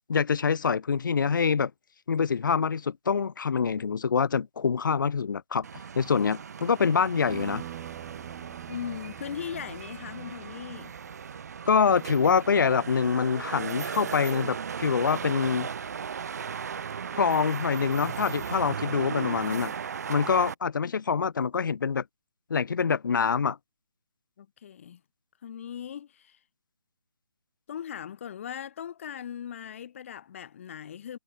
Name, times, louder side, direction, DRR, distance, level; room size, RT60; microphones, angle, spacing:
voice 1, 0.1-1.7 2.1-5.6 5.9-7.6 11.7-15.7 17.2-19.7 20.1-22.0 22.5-23.6, left 6 dB, 55° left, 1.2 m, -25 dB
sound 1, 5.6-20.5, right 7 dB, 40° right, 1.2 m, -37 dB
sound 2, 7.3-12.4, right 17 dB, 20° right, 3.8 m, -45 dB
voice 2, 8.7-11.0 20.8-20.9 24.4-25.0 25.4-26.4 27.7-31.2, left 9 dB, 35° left, 3.1 m, -39 dB
hypercardioid pair, 170°, 13 cm